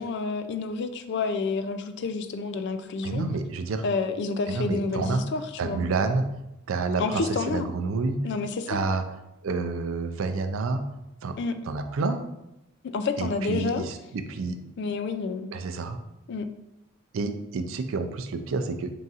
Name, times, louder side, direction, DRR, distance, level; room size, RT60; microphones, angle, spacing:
voice 1, 0.0-3.2 3.8-5.8 7.0-7.7 8.2-8.8 11.4-11.5 12.9-13.8 14.8-15.5 16.3-16.5, left 4 dB, 55° left, 9 dB, 0.3 m, -29 dB
voice 2, 3.0-3.8 4.5-5.2 5.6-6.2 6.7-8.2 8.7-9.0 9.4-10.8 11.2-11.4 11.7-12.2 13.2-14.6 15.5-16.0 17.1-18.9, right 3 dB, 75° right, 8 dB, 0.4 m, -29 dB
4.0 x 3.8 x 2.4 m, 0.89 s
head